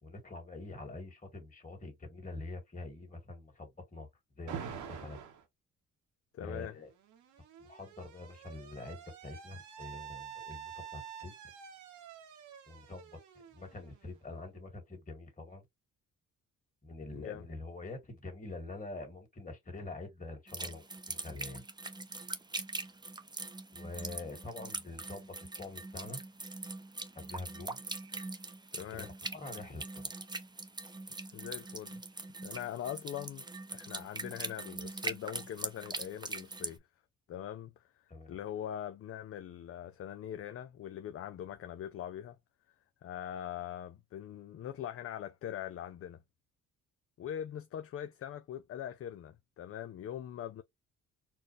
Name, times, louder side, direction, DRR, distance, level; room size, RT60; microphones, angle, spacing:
voice 1, 0.0-4.1 4.4-5.2 6.4-6.9 7.6-11.3 12.7-13.2 13.5-15.6 16.8-21.6 23.7-26.2 27.2-27.8 28.8-30.2 38.1-38.4, left 2 dB, 25° left, 2.2 m, -45 dB
Alarm, 4.5-5.4 6.7-14.4, right 8 dB, 75° right, 1.1 m, -47 dB
voice 2, 6.3-6.7 17.1-17.5 28.7-29.1 31.3-32.0 32.4-33.5 33.7-36.8 37.3-37.8 38.3-42.4 43.0-46.2 47.2-50.6, left 10 dB, 50° left, 0.5 m, -42 dB
sound 1, 20.5-36.7, right 3 dB, 15° right, 0.6 m, -42 dB
4.4 x 2.2 x 3.2 m
cardioid pair, 90°, 30 cm